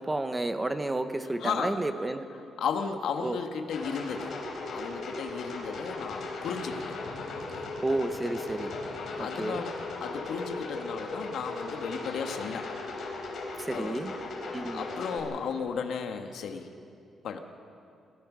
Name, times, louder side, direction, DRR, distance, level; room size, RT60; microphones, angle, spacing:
voice 1, 0.0-2.3 3.2-3.4 7.8-8.7 9.2-9.6 13.5-14.1 14.5-14.9, right 2 dB, 10° right, 9 dB, 0.9 m, -31 dB
voice 2, 1.4-1.8 2.6-4.3 4.7-7.0 7.3-7.7 9.2-12.8 13.7-14.1 14.5-16.7 17.2-17.4, left 6 dB, 70° left, 5 dB, 1.5 m, -35 dB
sound 1, 3.7-15.2, left 3 dB, 55° left, 4.1 m, -37 dB
27.5 x 15.0 x 6.2 m, 2.5 s
cardioid pair, 165°, 0 cm